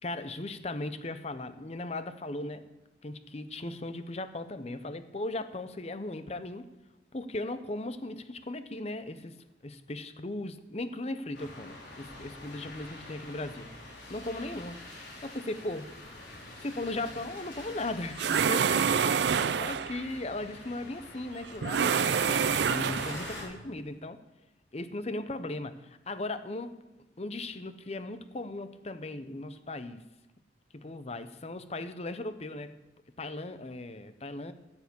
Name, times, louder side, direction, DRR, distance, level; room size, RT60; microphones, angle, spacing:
voice 1, 0.0-2.7 3.0-6.7 7.1-13.7 14.1-14.8 15.2-15.9 16.6-19.2 19.6-24.2 24.7-26.8 27.2-30.0 30.7-32.8 33.2-34.5, left 2 dB, 35° left, 11 dB, 0.7 m, -37 dB
sound 1, 11.3-23.4, left 1 dB, 75° left, 4.3 m, -46 dB
sound 2, 18.2-20.0 21.6-23.4, right 6 dB, 65° right, 0.4 m, -27 dB
14.5 x 7.0 x 7.0 m, 1.0 s
head